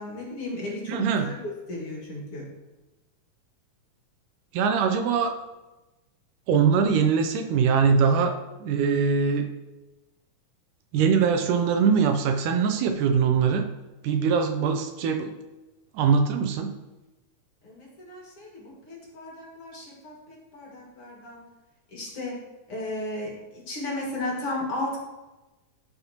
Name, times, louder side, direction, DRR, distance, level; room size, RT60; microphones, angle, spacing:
voice 1, 0.0-2.4 17.6-21.4 21.9-22.4 22.7-25.0, left 2 dB, 50° left, -3 dB, 2.5 m, -35 dB
voice 2, 0.9-1.3 4.5-5.3 6.5-9.5 10.9-13.7 14.0-15.3 15.9-16.7, right 6 dB, 80° right, 6 dB, 2.1 m, -22 dB
13.0 x 5.7 x 2.9 m, 1.1 s
omnidirectional pair, 3.8 m